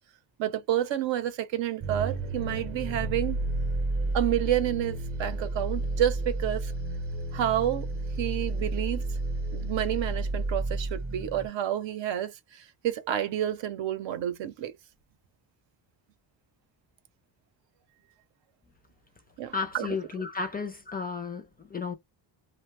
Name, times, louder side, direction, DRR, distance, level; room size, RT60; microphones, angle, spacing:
voice 1, 0.4-3.4 4.1-6.7 7.3-7.9 8.2-9.1 9.5-14.7 19.4-20.2, right 11 dB, 70° right, 0.7 m, -29 dB
sound 1, 1.8-11.5, right 2 dB, 30° right, 0.7 m, -31 dB
voice 2, 19.5-21.5 21.7-21.9, left 5 dB, 20° left, 0.4 m, -33 dB
2.6 x 2.2 x 3.2 m
cardioid pair, 145°, 46 cm